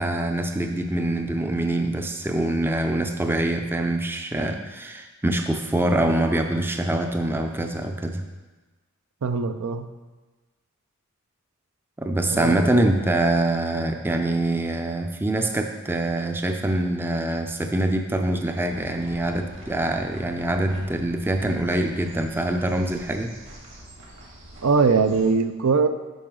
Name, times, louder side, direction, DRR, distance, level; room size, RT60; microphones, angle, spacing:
voice 1, 0.0-8.2 12.0-23.3, right 1 dB, 10° right, 5 dB, 0.4 m, -24 dB
voice 2, 9.2-9.9 12.3-12.7 24.6-25.9, right 4 dB, 80° right, 9 dB, 0.5 m, -21 dB
sound 1, 18.7-25.3, right 1 dB, 60° right, 1.8 m, -45 dB
9.0 x 5.9 x 3.8 m, 1.2 s
head